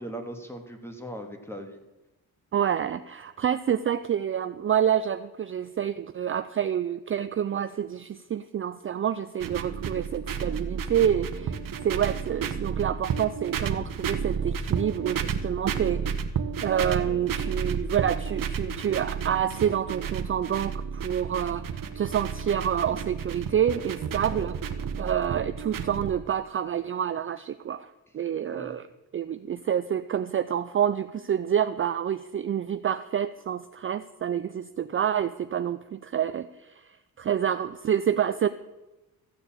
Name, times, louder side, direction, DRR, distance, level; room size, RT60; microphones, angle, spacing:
voice 1, 0.0-1.8 11.8-11.9 17.0-17.3 24.3-24.5 28.4-28.7, equal, 5° left, 5 dB, 1.9 m, -39 dB
voice 2, 2.5-11.5 11.8-16.0 16.6-28.9 29.1-38.5, right 9 dB, 35° right, 12 dB, 0.4 m, -28 dB
sound 1, 9.4-26.1, right 7 dB, 65° right, 1.1 m, -32 dB
14.5 x 6.9 x 8.7 m, 1.1 s
wide cardioid pair, 135°, 37 cm